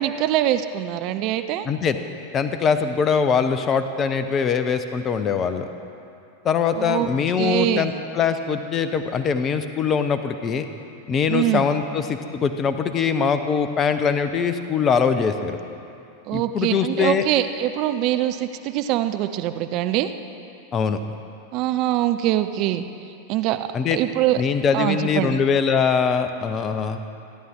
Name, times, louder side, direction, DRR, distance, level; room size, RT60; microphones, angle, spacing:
voice 1, 0.0-1.7 6.8-7.1 7.4-7.9 11.3-11.6 16.3-20.1 21.5-22.9 23.3-24.4 24.7-25.4, right 13 dB, 40° right, 9 dB, 0.6 m, -23 dB
voice 2, 1.6-2.0 2.3-5.7 6.4-10.7 11.1-15.6 16.3-17.2 20.7-21.0 23.7-24.0 24.4-27.0, left 6 dB, 25° left, 9 dB, 0.9 m, -22 dB
28.5 x 11.0 x 3.8 m, 2.7 s
figure-of-eight pair, 90°, 0 cm